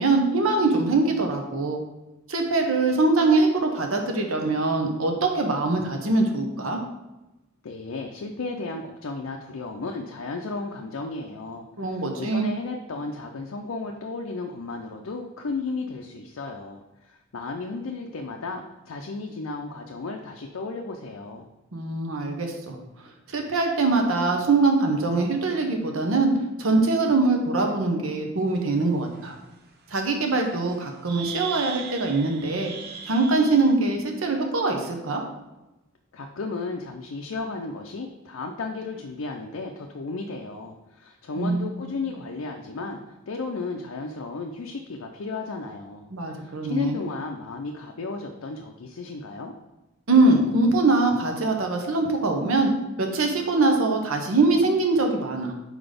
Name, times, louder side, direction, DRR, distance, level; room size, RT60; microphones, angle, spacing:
voice 1, 0.0-1.8 2.3-6.8 11.8-12.5 21.7-22.8 23.3-26.3 26.6-29.3 29.9-32.7 33.1-35.2 41.4-41.9 46.1-47.0 50.1-52.7 53.0-55.5, right 3 dB, 85° right, 3 dB, 0.9 m, -23 dB
voice 2, 7.6-21.5 36.1-46.1 46.4-49.5, left 3 dB, 85° left, 2 dB, 0.5 m, -34 dB
sound 1, 28.5-28.6 29.1-29.3 30.7-30.8 31.1-33.7, right 7 dB, 50° right, 0.7 m, -38 dB
4.8 x 4.0 x 5.1 m, 1.0 s
head